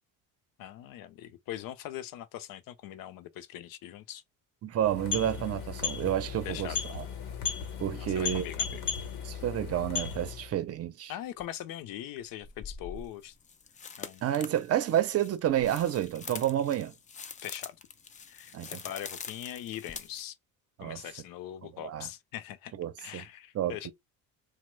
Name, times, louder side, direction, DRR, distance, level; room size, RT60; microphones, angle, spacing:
voice 1, 0.6-4.2 6.4-6.9 8.0-8.8 11.1-13.3 14.0-14.3 17.4-17.8 18.3-20.4 20.8-22.7 23.0-23.9, left 12 dB, 75° left, 0.6 m, -41 dB
voice 2, 4.6-7.0 7.8-8.5 9.2-11.1 14.2-16.9 18.5-18.8 20.8-21.0 21.8-22.1 22.8-23.2 23.5-23.9, right 11 dB, 45° right, 0.6 m, -30 dB
sound 1, 4.8-10.6, left 6 dB, 90° left, 0.9 m, -36 dB
sound 2, 11.4-11.5 12.4-20.2, left 5 dB, 25° left, 0.3 m, -45 dB
3.0 x 2.1 x 3.1 m
cardioid pair, 110°, 35 cm